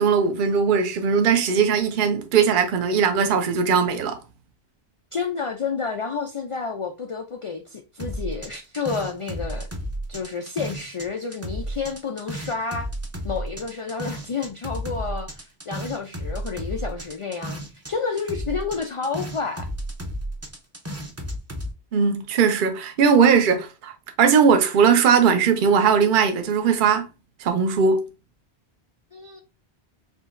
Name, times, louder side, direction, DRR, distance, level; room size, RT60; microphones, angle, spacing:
voice 1, 0.0-4.2 21.9-27.1 27.4-28.0, right 6 dB, 55° right, 0.7 m, -19 dB
voice 2, 5.1-9.7 10.1-12.9 13.2-17.6 17.9-19.7 29.1-29.4, left 5 dB, 60° left, 0.3 m, -30 dB
sound 1, 8.0-11.1 11.3-17.9 18.2-21.7, equal, 20° right, 0.6 m, -32 dB
4.9 x 2.8 x 2.5 m
omnidirectional pair, 1.1 m